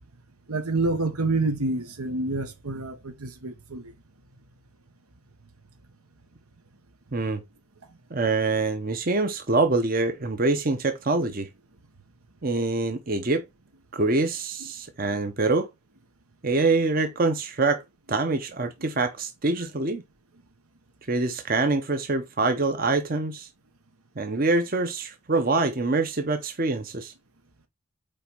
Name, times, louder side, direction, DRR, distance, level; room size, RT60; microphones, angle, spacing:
voice 1, 0.5-3.9, right 2 dB, 85° right, 1.3 m, -28 dB
voice 2, 8.1-11.5 12.4-13.4 13.9-15.7 16.4-17.8 18.1-20.0 21.1-23.5 24.2-27.1, right 3 dB, 40° right, 0.8 m, -25 dB
5.4 x 4.4 x 5.2 m
head